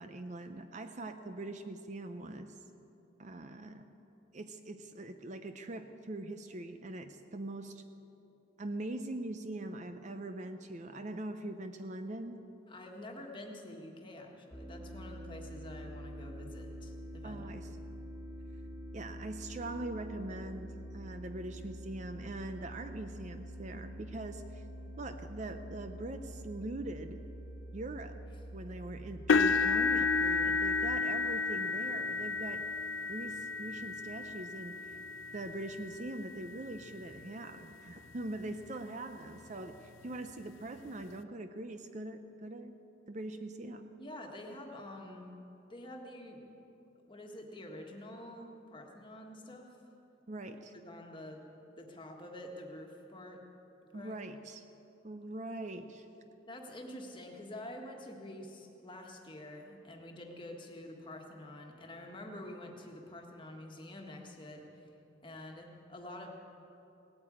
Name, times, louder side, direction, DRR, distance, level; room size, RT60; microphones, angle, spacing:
voice 1, 0.0-2.5 3.2-3.9 4.3-7.8 8.6-12.4 17.2-17.7 18.9-24.6 25.0-27.2 27.7-28.1 28.5-32.6 33.1-35.0 35.3-39.8 40.0-42.7 43.1-43.9 50.3-50.7 53.9-54.6 55.0-56.1, right 2 dB, 40° right, 8 dB, 0.6 m, -42 dB
voice 2, 12.7-17.7 44.0-45.3 45.7-46.4 47.1-49.8 50.7-51.4 51.8-53.4 53.9-54.2 56.5-64.9 65.2-66.3, left 1 dB, 25° left, 1 dB, 1.5 m, -47 dB
sound 1, 14.5-31.0, equal, 20° right, 3.8 m, -46 dB
sound 2, 29.3-37.3 38.0-38.2 38.6-38.7 40.1-40.2, left 4 dB, 85° left, 0.5 m, -32 dB
18.0 x 8.8 x 8.7 m, 3.0 s
head